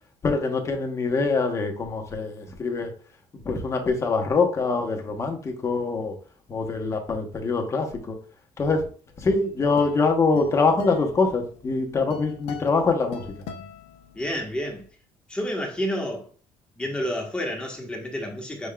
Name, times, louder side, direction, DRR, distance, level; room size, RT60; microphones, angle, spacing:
voice 1, 0.2-2.9 3.4-6.1 6.5-8.2 8.6-8.9 9.2-13.3, left 4 dB, 30° left, 1.0 m, -24 dB
sound 1, 9.2-14.6, left 7 dB, 85° left, 0.8 m, -42 dB
voice 2, 14.1-14.8 15.3-16.3 16.8-18.7, equal, 10° left, 1.2 m, -29 dB
6.0 x 3.6 x 2.3 m
cardioid pair, 130°, 11 cm